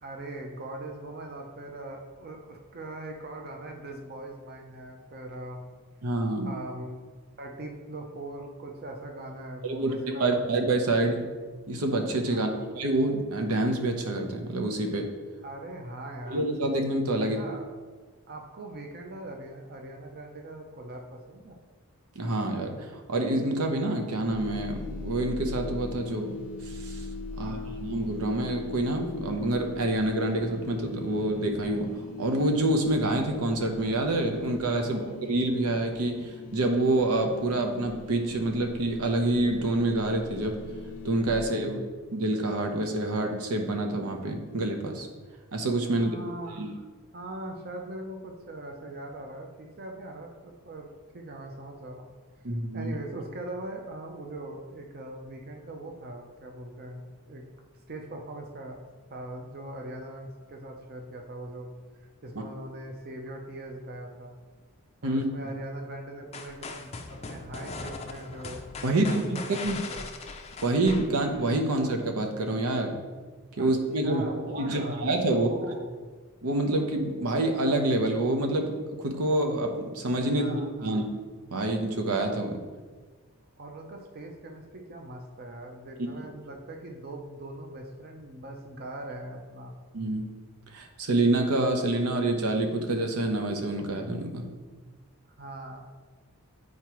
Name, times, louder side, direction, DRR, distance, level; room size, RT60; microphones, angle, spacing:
voice 1, 0.0-5.7 6.4-7.0 7.4-10.5 12.3-12.6 15.4-16.4 17.3-17.7 18.3-21.6 27.3-27.8 34.8-35.2 41.3-41.9 45.9-46.8 47.1-52.1 52.7-57.4 57.9-58.8 59.1-61.7 61.9-64.3 65.0-70.1 73.6-73.7 74.0-76.1 80.3-81.0 83.6-89.7 95.4-95.8, right 1 dB, 45° right, 2 dB, 0.6 m, -41 dB
voice 2, 6.0-6.5 9.6-9.9 10.2-11.2 11.7-15.1 16.3-17.4 22.2-27.1 27.4-31.9 32.2-40.6 41.0-41.7 42.1-45.1 45.5-46.2 46.6-46.7 52.4-52.9 65.0-65.2 68.8-69.8 70.6-73.0 73.5-74.2 74.6-75.5 76.4-81.0 81.5-82.6 89.9-90.3 90.7-94.5, right 2 dB, 85° right, 3 dB, 0.8 m, -27 dB
sound 1, 24.3-41.5, left 3 dB, 85° left, 0.5 m, -40 dB
sound 2, 66.3-71.6, left 4 dB, 30° left, 0.4 m, -40 dB
8.5 x 4.7 x 3.0 m, 1.4 s
head